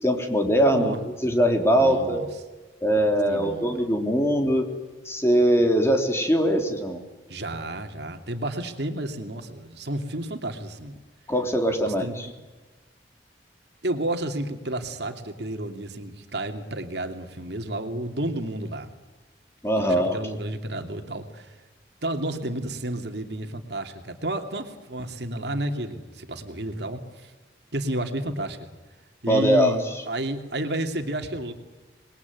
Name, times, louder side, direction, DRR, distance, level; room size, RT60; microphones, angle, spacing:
voice 1, 0.0-2.2 2.8-4.7 5.1-7.0 11.3-12.3 19.6-20.2 29.3-29.8, equal, 15° left, 3 dB, 3.5 m, -22 dB
voice 2, 1.7-2.3 3.3-3.9 7.3-10.9 11.8-12.1 13.8-18.9 19.8-21.6 22.0-27.3 27.7-28.7 29.2-31.5, right 1 dB, 65° right, 5 dB, 2.8 m, -31 dB
27.5 x 21.5 x 9.5 m, 1.2 s
head